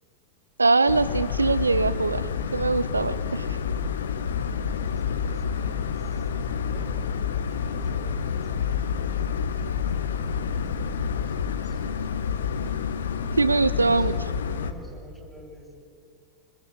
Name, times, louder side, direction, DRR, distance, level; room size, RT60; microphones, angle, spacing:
voice 1, 0.6-3.6 13.3-14.1, right 3 dB, 80° right, 16 dB, 0.6 m, -22 dB
sound 1, 0.9-14.7, left 7 dB, 65° left, 1.4 m, -28 dB
voice 2, 4.3-6.3 6.6-7.0 7.5-11.8 13.7-14.3 14.6-15.9, right 1 dB, ahead, -2 dB, 7.5 m, -48 dB
26.5 x 26.0 x 7.9 m, 2.4 s
figure-of-eight pair, 90°, 0 cm